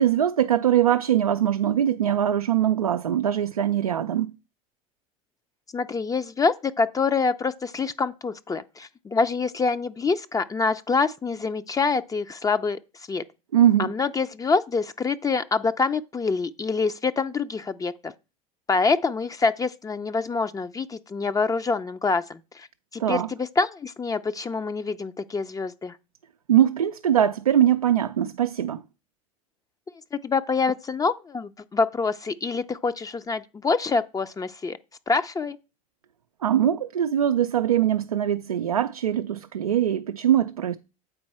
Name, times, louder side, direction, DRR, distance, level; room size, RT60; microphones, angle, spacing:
voice 1, 0.0-4.3 13.5-13.9 23.0-23.3 26.5-28.8 36.4-40.8, right 10 dB, 90° right, 0.4 m, -22 dB
voice 2, 5.7-12.8 13.1-13.2 13.8-18.1 18.7-22.7 22.9-26.0 30.1-34.8 35.1-35.6, left 4 dB, 20° left, 0.5 m, -26 dB
8.1 x 4.5 x 4.2 m
hypercardioid pair, 75°, 18 cm